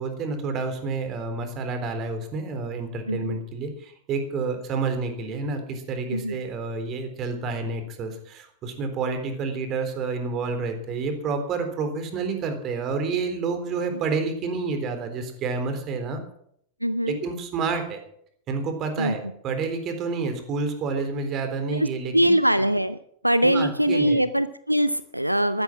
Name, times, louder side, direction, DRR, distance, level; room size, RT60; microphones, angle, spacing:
voice 1, 0.0-16.2 17.0-18.0 18.5-22.3 23.4-24.2, right 4 dB, 35° right, 7 dB, 3.7 m, -29 dB
voice 2, 3.1-3.4 6.1-6.4 13.9-14.0 16.8-17.2 19.0-19.2 21.7-21.9 22.1-23.0 23.2-25.6, equal, 90° right, 14 dB, 0.6 m, -22 dB
14.5 x 13.5 x 6.1 m, 0.67 s
figure-of-eight pair, 90°, 0 cm